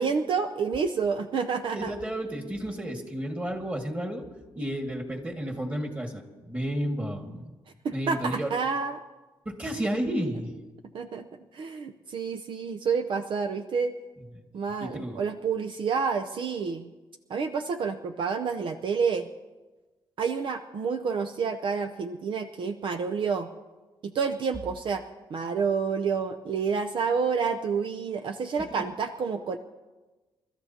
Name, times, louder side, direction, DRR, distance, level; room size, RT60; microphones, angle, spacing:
voice 1, 0.0-1.9 7.8-9.0 10.9-11.3 11.5-13.9 14.5-16.9 17.3-19.3 20.2-23.5 24.0-25.0 25.3-29.6, right 5 dB, 60° right, 7 dB, 0.6 m, -29 dB
voice 2, 1.7-4.3 4.6-7.5 7.9-8.5 9.5-10.5 14.8-15.2 28.7-28.8, equal, 15° right, 3 dB, 1.9 m, -32 dB
28.5 x 13.0 x 2.9 m, 1.2 s
cardioid pair, 110°, 9 cm